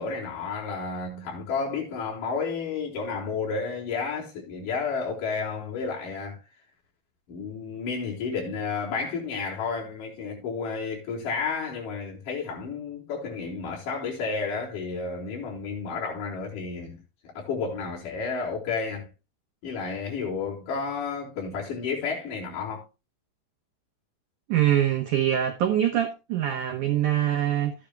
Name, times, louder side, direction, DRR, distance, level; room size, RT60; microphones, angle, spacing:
voice 1, 0.0-6.4 7.3-17.0 17.4-19.1 19.6-22.8, left 5 dB, 45° left, 5.3 m, -31 dB
voice 2, 24.5-27.7, right 11 dB, 85° right, 1.7 m, -24 dB
14.0 x 10.0 x 2.3 m
omnidirectional pair, 5.2 m